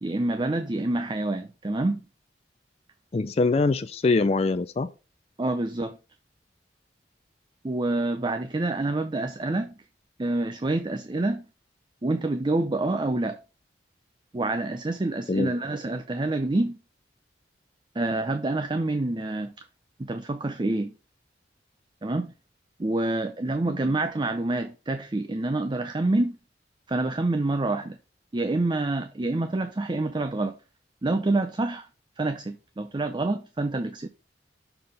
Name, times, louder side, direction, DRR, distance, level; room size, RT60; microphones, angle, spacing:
voice 1, 0.0-2.0 5.4-6.0 7.6-9.7 10.2-11.5 12.0-13.4 14.3-16.8 18.0-19.6 20.0-20.9 22.0-22.3 22.8-26.4 26.9-28.0 28.3-30.6 31.0-31.9 32.2-34.1, right 2 dB, 25° right, 0.5 m, -27 dB
voice 2, 3.1-4.9 15.3-15.5 23.6-23.9, left 3 dB, 35° left, 0.4 m, -24 dB
6.8 x 4.0 x 5.4 m
head